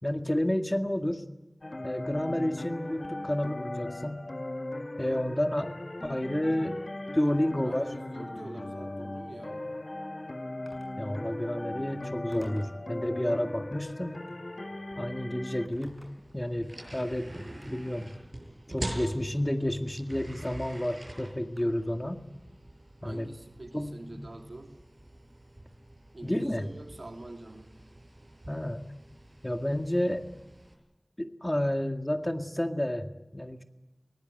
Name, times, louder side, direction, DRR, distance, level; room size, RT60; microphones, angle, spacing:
voice 1, 0.0-1.2 1.8-4.3 5.0-5.7 6.0-6.8 7.1-7.9 11.0-14.2 15.0-16.0 16.3-18.1 18.7-22.2 23.0-23.3 23.7-24.3 26.2-26.7 28.5-28.8 29.4-30.3 31.2-33.6, left 1 dB, 25° left, 6 dB, 1.9 m, -30 dB
sound 1, 1.6-15.7, left 1 dB, 70° left, 1.8 m, -38 dB
voice 2, 7.6-9.8 23.0-24.8 26.1-27.7, right 2 dB, 85° right, 4 dB, 2.9 m, -45 dB
Telephone, 10.7-11.0 12.3-12.8 14.0-14.4 15.6-16.3 17.3-17.7 18.8-19.3 20.3-20.5 21.6-22.0, equal, ahead, 6.9 m, -53 dB
sound 2, 15.7-30.7, right 1 dB, 45° right, 6.9 m, -45 dB
23.5 x 18.5 x 9.1 m, 1.1 s
wide cardioid pair, 40°, 0 cm